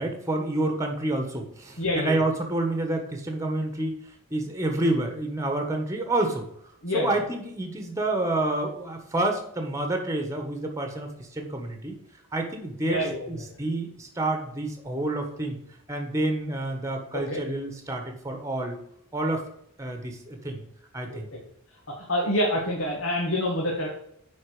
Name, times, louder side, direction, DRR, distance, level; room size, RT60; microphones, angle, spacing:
voice 1, 0.0-4.0 4.3-6.4 6.9-12.0 12.3-15.6 15.9-18.8 19.1-19.5 19.8-20.6 20.9-21.3, right 2 dB, 15° right, 3 dB, 1.4 m, -28 dB
voice 2, 1.8-2.2 6.8-7.2 12.8-13.4 17.1-17.4 21.1-21.4 22.1-23.9, left 1 dB, 60° left, -2 dB, 1.7 m, -27 dB
9.6 x 4.4 x 5.0 m, 0.71 s
head